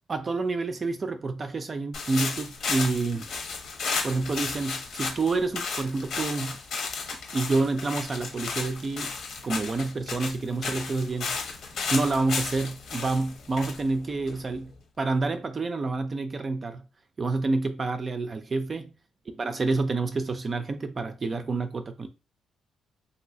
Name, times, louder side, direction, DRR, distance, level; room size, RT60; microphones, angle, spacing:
voice 1, 0.1-3.3 4.0-6.6 7.3-9.1 9.4-11.4 11.9-14.7 15.0-16.8 17.2-18.9 19.3-22.1, right 3 dB, 35° right, 0.4 m, -28 dB
sound 1, 1.9-14.7, left 4 dB, 70° left, 1.0 m, -34 dB
3.0 x 2.7 x 2.7 m
cardioid pair, 90°, 0 cm